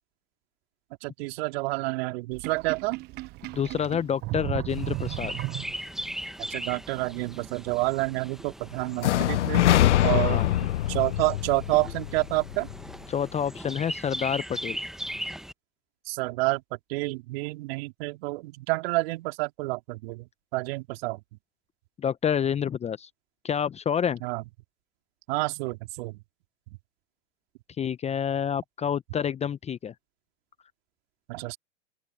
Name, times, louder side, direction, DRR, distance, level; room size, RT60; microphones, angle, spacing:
voice 1, 1.0-3.0 6.5-9.7 10.0-12.7 16.1-21.2 24.2-24.4 25.3-26.2 31.3-31.6, right 24 dB, 55° right, 3.6 m, -29 dB
Sink (filling or washing), 2.3-6.1, right 20 dB, 30° right, 0.6 m, -34 dB
voice 2, 3.5-5.4 10.1-10.5 13.1-14.8 22.0-23.1 23.4-24.2 27.8-29.9, left 8 dB, 15° left, 0.9 m, -28 dB
Chirp tweet, 4.7-15.5, right 1 dB, ahead, 1.4 m, -39 dB
sound 1, 9.0-12.9, left 13 dB, 70° left, 0.8 m, -24 dB
open air
hypercardioid pair, 105°, 37 cm